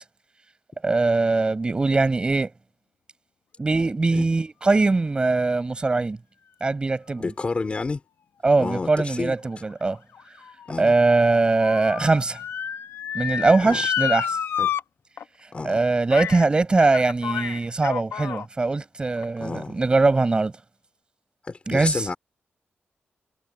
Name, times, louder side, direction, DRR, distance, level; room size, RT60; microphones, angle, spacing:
voice 1, 0.8-2.5 3.6-6.2 6.6-7.3 8.4-10.0 10.8-12.4 13.1-14.4 15.6-20.5 21.7-22.0, right 3 dB, 25° right, 6.4 m, -21 dB
voice 2, 7.2-8.0 8.6-9.3 10.7-11.0 13.6-13.8 14.6-14.7 15.5-15.8 19.4-19.8 21.4-22.2, left 3 dB, 30° left, 5.2 m, -29 dB
Motor vehicle (road) / Siren, 9.6-14.8 15.2-15.3 16.1-16.5 16.8-18.5 19.2-19.3, left 8 dB, 80° left, 2.0 m, -30 dB
wide cardioid pair, 170°, 4 cm